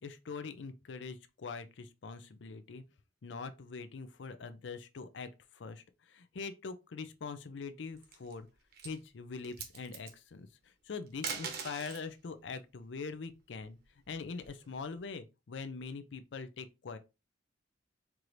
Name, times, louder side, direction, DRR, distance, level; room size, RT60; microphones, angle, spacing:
voice 1, 0.0-2.8 3.2-5.3 5.6-5.8 6.1-8.5 8.8-10.5 10.9-13.8 14.1-17.0, left 4 dB, 70° left, 0.5 m, -43 dB
sound 1, 7.8-8.3 8.7-9.0 9.4-10.1 11.1-12.1 13.6-14.8, right 6 dB, 55° right, 0.9 m, -42 dB
4.6 x 2.6 x 3.1 m
head